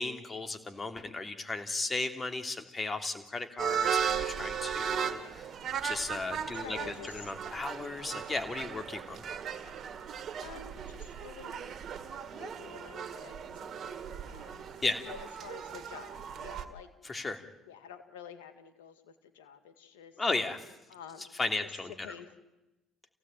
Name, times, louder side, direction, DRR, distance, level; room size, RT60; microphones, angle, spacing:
voice 1, 0.0-5.5 5.8-6.8 7.1-9.2 14.8-15.0 17.0-17.4 20.2-20.6 21.4-22.1, left 3 dB, 30° left, 7 dB, 3.1 m, -35 dB
sound 1, 3.6-16.7, right 8 dB, 50° right, 2.0 m, -37 dB
voice 2, 6.4-7.3 10.4-11.7 12.1-14.0 14.3-16.9 17.7-20.2 20.9-21.3 21.6-22.3, left 8 dB, 90° left, 10 dB, 2.0 m, -49 dB
28.5 x 16.5 x 9.1 m, 1.0 s
hypercardioid pair, 65°, 0 cm